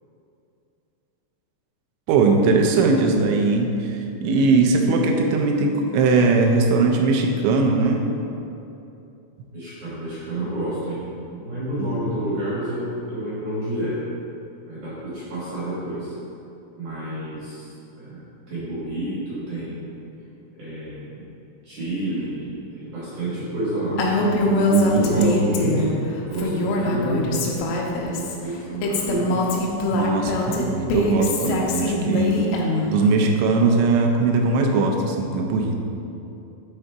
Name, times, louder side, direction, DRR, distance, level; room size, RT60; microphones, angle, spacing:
voice 1, 2.1-8.0 11.8-12.0 23.8-25.4 29.9-32.4 32.9-35.8, right 3 dB, 85° right, 2 dB, 2.7 m, -20 dB
voice 2, 9.5-14.0 14.7-16.1 16.8-17.7 18.0-18.2 18.5-20.0 20.6-21.2 21.6-24.0 25.0-25.9 26.3-29.5, right 1 dB, 65° right, -10 dB, 1.9 m, -29 dB
Female speech woman speaking, 24.0-25.9 26.3-28.3 28.8-32.9, left 2 dB, 80° left, 3.1 m, -23 dB
8.1 x 3.8 x 4.5 m, 2.8 s
omnidirectional pair, 5.8 m